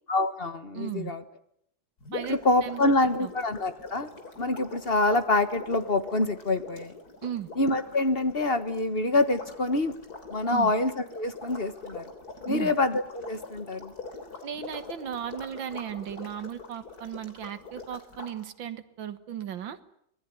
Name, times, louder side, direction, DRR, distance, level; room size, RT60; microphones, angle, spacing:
voice 1, 0.1-1.2 2.3-6.9 7.6-10.0 10.3-12.0 12.5-13.9, left 2 dB, 35° left, 10 dB, 1.5 m, -26 dB
voice 2, 0.7-1.1 2.1-2.9 3.2-3.3 7.2-7.5 10.5-10.7 12.5-12.7 14.4-19.8, right 9 dB, 75° right, 11 dB, 2.1 m, -36 dB
sound 1, 2.0-18.3, left 3 dB, 50° left, 3.9 m, -44 dB
26.0 x 20.0 x 9.6 m, 0.72 s
omnidirectional pair, 2.1 m